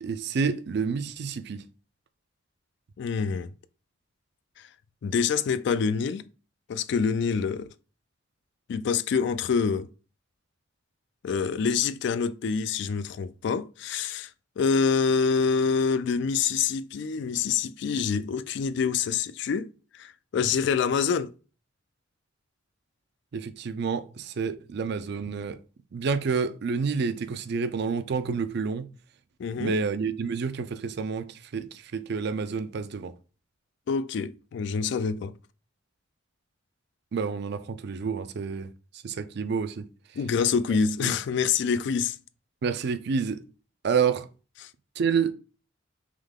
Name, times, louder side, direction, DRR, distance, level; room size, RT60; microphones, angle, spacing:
voice 1, 0.0-1.6 23.3-25.6 25.9-28.9 29.6-33.1 37.1-38.7 39.0-39.9 41.0-41.1 42.6-43.4 43.8-44.3 45.0-45.3, right 5 dB, 60° right, 0.4 m, -29 dB
voice 2, 3.0-3.5 5.0-6.2 6.7-7.7 8.7-9.9 11.2-14.3 14.6-19.7 19.9-21.4 29.4-29.8 33.9-35.3 40.2-42.2 44.6-44.7, left 6 dB, 60° left, 0.3 m, -26 dB
3.8 x 3.1 x 3.5 m
head